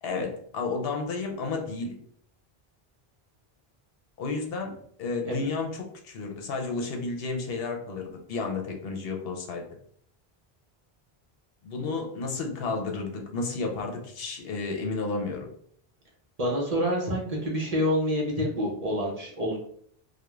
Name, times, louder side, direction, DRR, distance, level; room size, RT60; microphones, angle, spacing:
voice 1, 0.0-2.0 4.2-9.6 11.6-15.5, left 3 dB, 70° left, 2 dB, 0.8 m, -32 dB
voice 2, 16.4-19.6, equal, 45° right, -3 dB, 0.6 m, -27 dB
2.3 x 2.1 x 3.0 m, 0.63 s
omnidirectional pair, 1.0 m